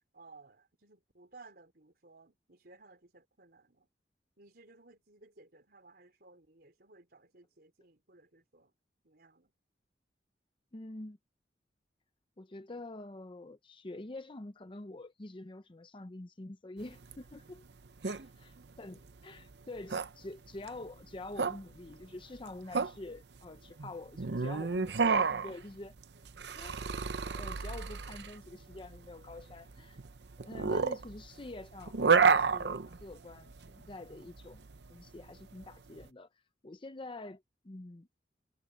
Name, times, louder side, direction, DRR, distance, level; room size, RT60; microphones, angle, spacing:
voice 1, 0.1-3.9 4.4-8.7 9.0-9.5 18.1-18.7, right 3 dB, 60° right, 4.1 m, -58 dB
voice 2, 10.7-11.2 12.4-17.7 18.0-18.5 18.8-25.9 26.5-26.9 27.2-30.0 30.4-36.3 36.6-38.1, left 2 dB, 30° left, 0.7 m, -46 dB
sound 1, 16.8-36.0, right 5 dB, 75° right, 0.7 m, -32 dB
head